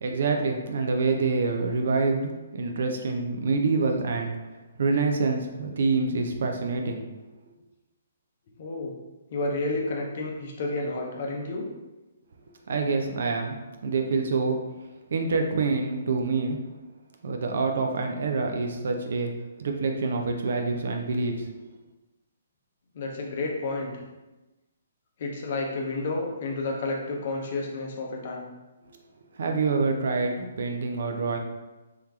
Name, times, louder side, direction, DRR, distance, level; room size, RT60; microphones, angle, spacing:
voice 1, 0.0-4.4 4.8-7.0 12.7-13.6 13.8-14.6 15.1-16.8 17.2-19.3 19.6-21.5 28.9-29.0 29.3-31.4, right 4 dB, 55° right, 3 dB, 0.4 m, -26 dB
voice 2, 8.6-8.9 9.3-11.6 22.9-24.0 25.2-28.5, left 2 dB, 45° left, 0 dB, 0.6 m, -30 dB
3.3 x 3.2 x 2.4 m, 1.1 s
figure-of-eight pair, 130°, 0 cm